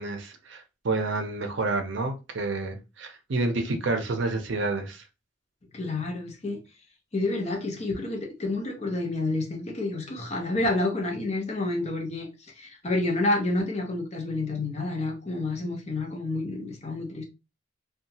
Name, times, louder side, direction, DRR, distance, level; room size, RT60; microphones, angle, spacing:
voice 1, 0.0-5.0, right 3 dB, 65° right, 0.6 m, -29 dB
voice 2, 5.7-6.6 7.1-12.3 12.6-17.2, left 2 dB, 35° left, 0.6 m, -29 dB
2.8 x 2.3 x 2.7 m
head